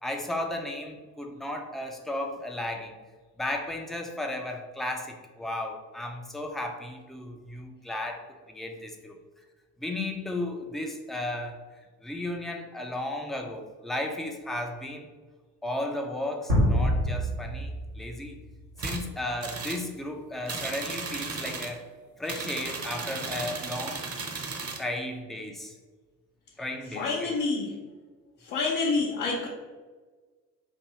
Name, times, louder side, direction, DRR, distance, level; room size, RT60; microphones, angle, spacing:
voice 1, 0.0-2.9 3.4-9.2 9.8-11.6 12.0-15.1 15.6-17.7 18.0-18.4 18.8-21.8 22.2-24.0 24.8-25.7 26.6-27.3, left 1 dB, ahead, 2 dB, 0.3 m, -34 dB
sound 1, 16.5-18.9, equal, 90° right, 1.5 m, -26 dB
sound 2, 18.8-19.0 19.4-19.8 20.5-21.8 22.2-24.9, right 4 dB, 30° right, 0.7 m, -35 dB
voice 2, 26.6-27.7 28.4-29.5, left 3 dB, 75° left, -4 dB, 0.8 m, -28 dB
4.4 x 2.6 x 3.0 m, 1.4 s
figure-of-eight pair, 45°, 50 cm